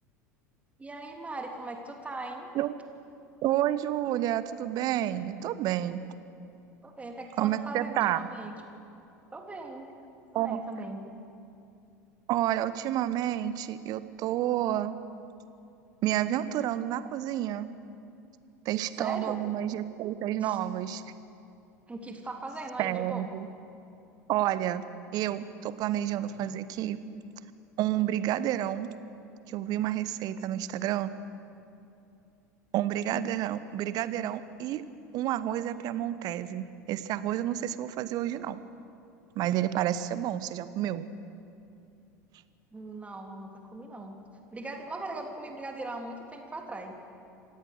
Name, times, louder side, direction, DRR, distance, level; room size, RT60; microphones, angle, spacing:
voice 1, 0.8-2.5 6.8-8.7 9.3-9.9 10.3-11.0 18.9-19.4 20.4-20.6 21.9-23.3 42.7-44.2 44.5-46.9, right 2 dB, 15° right, 2 dB, 3.2 m, -39 dB
voice 2, 3.4-6.0 7.4-8.2 10.3-10.6 12.3-14.9 16.0-17.7 18.6-21.0 22.8-23.5 24.3-24.8 25.1-27.0 27.8-28.9 29.5-31.1 32.7-34.8 35.1-38.6 39.3-41.1, right 12 dB, 45° right, 14 dB, 1.1 m, -30 dB
27.0 x 17.0 x 6.7 m, 2.7 s
figure-of-eight pair, 75°, 9 cm